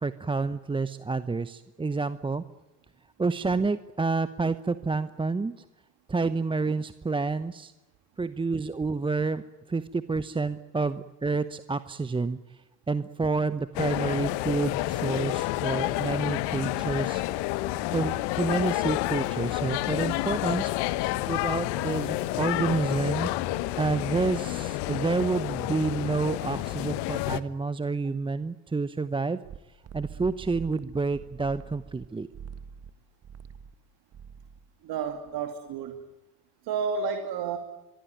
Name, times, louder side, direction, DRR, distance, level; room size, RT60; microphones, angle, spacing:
voice 1, 0.0-2.4 3.2-5.5 6.1-7.7 8.2-9.4 9.7-12.4 12.9-17.2 17.9-20.7 21.3-23.3 23.8-29.4 29.9-32.3, right 4 dB, 10° right, 14 dB, 0.8 m, -29 dB
sound 1, 13.7-27.4, left 16 dB, 55° left, 1.3 m, -29 dB
sound 2, 29.4-32.1 32.3-32.9 33.2-33.7 34.1-34.7, right 7 dB, 30° right, 1.5 m, -44 dB
voice 2, 34.8-36.0 36.6-37.6, right 6 dB, 50° right, 7 dB, 2.6 m, -31 dB
24.0 x 23.0 x 9.3 m, 1.1 s
figure-of-eight pair, 65°, 49 cm